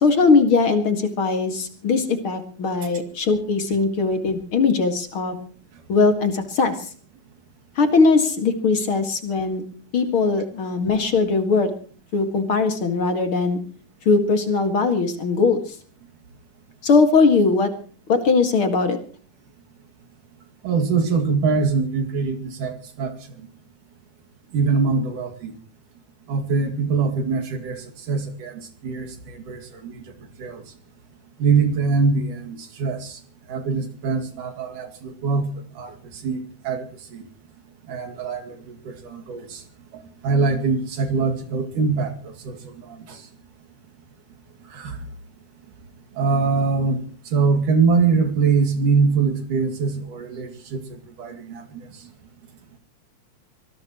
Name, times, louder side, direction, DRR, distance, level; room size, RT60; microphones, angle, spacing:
voice 1, 0.0-5.3 5.9-6.8 7.8-9.6 9.9-11.7 12.1-13.6 14.1-15.8 16.8-17.7 18.1-19.0, left 4 dB, 45° left, 7 dB, 2.6 m, -20 dB
voice 2, 20.6-23.1 23.4-23.5 24.5-25.6 26.3-30.0 30.4-30.6 31.4-33.2 33.5-37.2 37.9-39.6 39.9-43.2 44.7-45.0 46.2-52.1, right 4 dB, 90° right, 4 dB, 3.8 m, -23 dB
24.5 x 18.5 x 3.1 m, 0.42 s
omnidirectional pair, 3.5 m